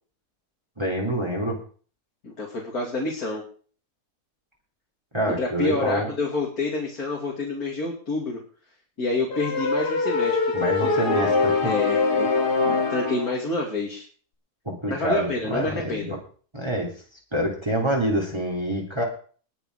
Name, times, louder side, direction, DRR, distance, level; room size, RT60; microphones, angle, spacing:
voice 1, 0.8-1.6 5.1-6.1 10.5-11.7 14.6-16.2 16.5-16.9 17.3-19.0, right 1 dB, 15° right, -1 dB, 3.4 m, -26 dB
voice 2, 2.2-3.4 5.4-8.4 9.0-10.4 11.6-12.3 12.6-14.0 14.9-16.2, left 2 dB, 65° left, -2 dB, 3.2 m, -28 dB
sound 1, 9.3-13.3, left 4 dB, 80° left, 2.4 m, -23 dB
20.5 x 7.2 x 4.9 m, 0.42 s
omnidirectional pair, 1.7 m